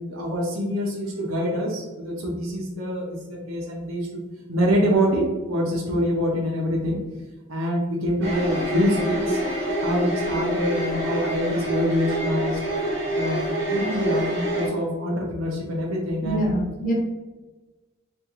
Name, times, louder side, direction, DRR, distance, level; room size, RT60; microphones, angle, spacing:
voice 1, 0.1-4.2 4.5-7.0 7.5-9.4 9.8-12.6 13.1-16.6, equal, 80° right, -2 dB, 0.7 m, -25 dB
sound 1, 8.2-14.7, right 1 dB, 55° right, 1.2 m, -26 dB
voice 2, 16.2-16.9, right 1 dB, 40° left, -2 dB, 0.9 m, -24 dB
3.6 x 2.5 x 3.0 m, 1.2 s
head